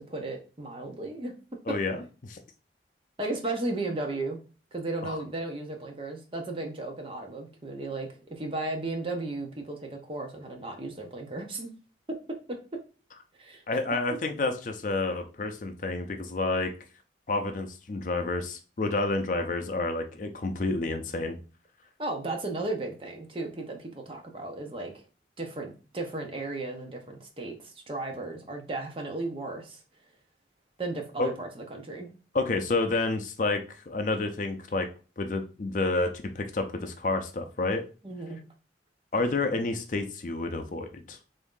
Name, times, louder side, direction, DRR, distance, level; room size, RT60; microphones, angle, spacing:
voice 1, 0.0-1.3 3.2-4.4 4.7-11.7 12.5-12.6 13.3-13.8 22.0-25.0 25.4-29.8 30.8-32.1 38.0-38.4, right 2 dB, 30° right, 2 dB, 0.7 m, -35 dB
voice 2, 1.7-2.4 5.0-5.2 13.7-16.7 17.3-21.4 31.2-31.3 32.3-34.9 35.2-37.8 39.1-41.2, left 3 dB, 45° left, 6 dB, 0.5 m, -29 dB
3.5 x 2.6 x 3.7 m, 0.35 s
head